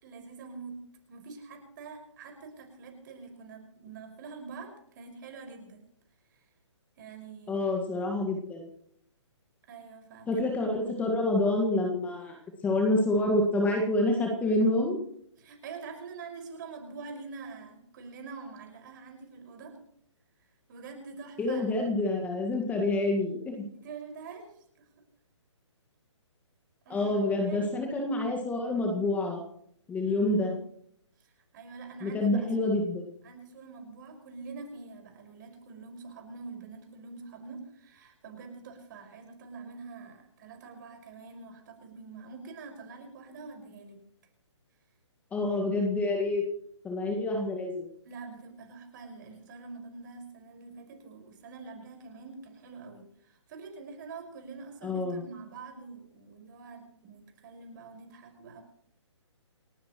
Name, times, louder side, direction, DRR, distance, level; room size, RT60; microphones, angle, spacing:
voice 1, 0.0-0.8 1.1-5.8 7.0-7.6 9.7-10.5 15.4-19.8 20.7-21.7 23.8-24.9 26.9-27.7 30.1-30.6 31.2-32.7 33.2-44.0 48.0-58.6, right 4 dB, 40° right, 3 dB, 5.7 m, -45 dB
voice 2, 7.5-8.7 10.3-12.4 12.6-15.0 21.4-23.6 26.9-29.4 29.9-30.5 32.0-33.0 45.3-46.4 46.8-47.9 54.8-55.2, left 2 dB, 10° left, 1 dB, 1.8 m, -27 dB
29.5 x 10.0 x 3.2 m, 0.70 s
hypercardioid pair, 150°, 15 cm